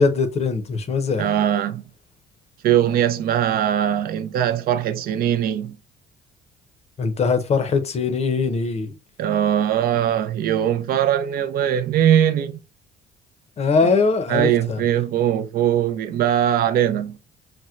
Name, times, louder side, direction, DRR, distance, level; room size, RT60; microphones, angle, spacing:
voice 1, 0.0-1.3 7.0-8.9 13.6-14.8, left 4 dB, 40° left, 0.6 m, -21 dB
voice 2, 1.2-1.8 2.6-5.8 9.2-12.6 14.3-17.2, right 10 dB, 60° right, 0.4 m, -21 dB
4.2 x 2.1 x 2.3 m
cardioid pair, 110°, 17 cm